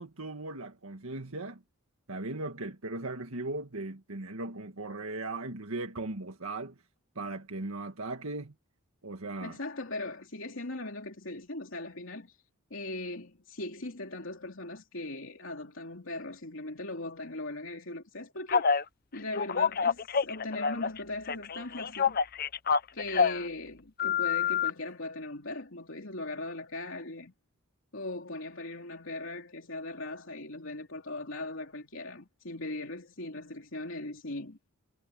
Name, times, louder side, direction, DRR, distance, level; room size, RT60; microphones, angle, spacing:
voice 1, 0.0-1.6 2.1-6.8 7.2-8.5 9.0-9.6, right 2 dB, 80° right, 1.7 m, -38 dB
voice 2, 9.4-12.4 12.7-18.8 19.1-22.2 22.9-27.3 27.9-34.6, left 2 dB, 65° left, 3.2 m, -39 dB
Telephone, 18.5-18.8 19.3-21.0 21.3-23.4 24.0-24.7, left 6 dB, 45° left, 0.7 m, -27 dB
head